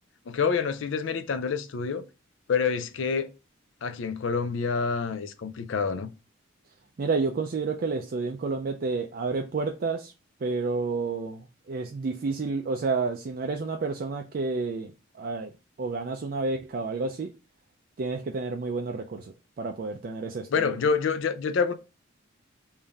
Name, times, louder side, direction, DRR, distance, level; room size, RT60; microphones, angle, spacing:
voice 1, 0.3-2.0 2.5-3.3 3.8-6.1 20.5-21.7, left 5 dB, 70° left, 0.4 m, -27 dB
voice 2, 7.0-10.1 10.4-15.5 15.8-17.3 18.0-20.7, right 4 dB, 50° right, 0.4 m, -30 dB
3.6 x 2.6 x 3.4 m
head